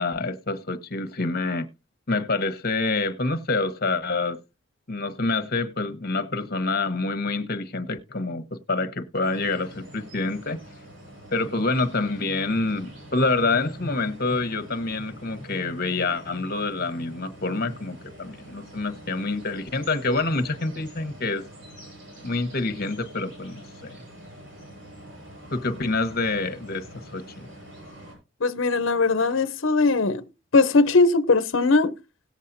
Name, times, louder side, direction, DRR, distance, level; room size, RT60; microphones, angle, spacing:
voice 1, 0.0-1.7 2.1-4.4 4.9-10.6 11.3-21.4 22.2-24.0 25.5-27.5, left 3 dB, 50° left, 1.2 m, -27 dB
sound 1, 9.2-28.1, right 1 dB, 65° right, 7.6 m, -45 dB
voice 2, 28.4-30.2 30.5-31.9, left 3 dB, 75° left, 0.8 m, -20 dB
18.0 x 7.4 x 2.7 m
head